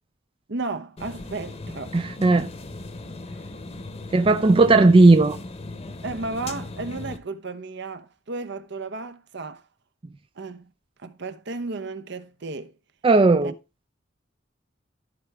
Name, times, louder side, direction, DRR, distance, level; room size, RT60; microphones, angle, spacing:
voice 1, 0.5-2.1 4.3-4.6 6.0-9.6 10.4-10.7 11.0-12.7 13.4-13.5, right 3 dB, 60° right, 0.9 m, -34 dB
sound 1, 1.0-7.2, left 2 dB, 35° left, 1.0 m, -38 dB
voice 2, 1.9-2.5 4.1-5.4 13.0-13.5, right 2 dB, 25° right, 0.4 m, -16 dB
13.5 x 4.8 x 3.4 m
head